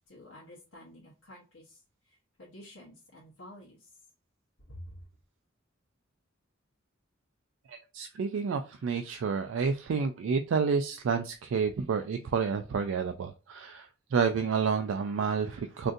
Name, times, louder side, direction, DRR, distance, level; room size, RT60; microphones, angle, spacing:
voice 1, 0.1-3.9 4.7-5.0, left 1 dB, 85° left, 0.9 m, -50 dB
voice 2, 7.7-15.9, right 5 dB, 65° right, 0.3 m, -30 dB
3.7 x 2.6 x 2.5 m
head